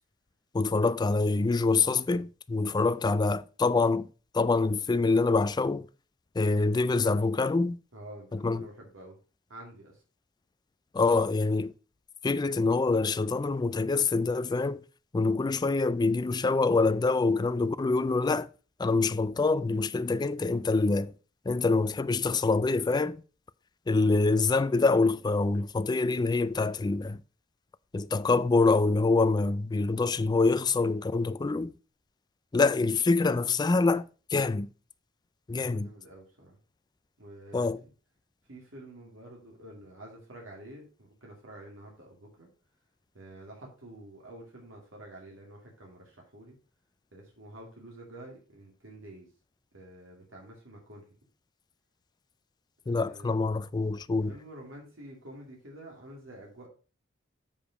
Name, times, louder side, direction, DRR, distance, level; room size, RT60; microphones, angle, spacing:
voice 1, 0.5-4.1 4.3-5.9 6.4-7.8 8.3-8.7 10.9-11.7 12.2-14.8 15.1-18.5 18.8-21.1 21.5-23.2 23.9-27.2 27.9-31.7 32.5-34.7 35.5-35.9 37.5-37.8 52.9-54.3, left 3 dB, 20° left, 0.3 m, -25 dB
voice 2, 7.9-9.2 9.5-10.0 21.5-21.7 35.5-36.6 37.2-37.7 38.5-42.5 43.1-46.6 47.1-49.3 49.7-51.0 52.8-53.3 54.3-56.7, right 1 dB, 80° right, 2.4 m, -48 dB
7.0 x 5.1 x 4.8 m
head